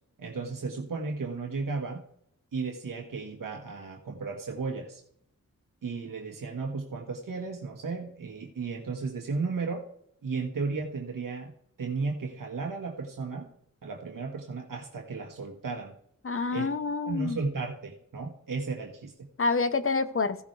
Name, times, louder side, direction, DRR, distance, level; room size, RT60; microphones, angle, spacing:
voice 1, 0.2-2.0 2.5-5.0 5.8-9.9 10.2-11.5 11.8-13.5 13.8-15.9 16.5-16.7 17.1-19.3, right 4 dB, 85° right, 1 dB, 1.6 m, -34 dB
voice 2, 16.2-17.4 19.4-20.4, left 4 dB, 40° left, 12 dB, 0.9 m, -27 dB
16.0 x 7.0 x 3.3 m, 0.69 s
wide cardioid pair, 85°, 32 cm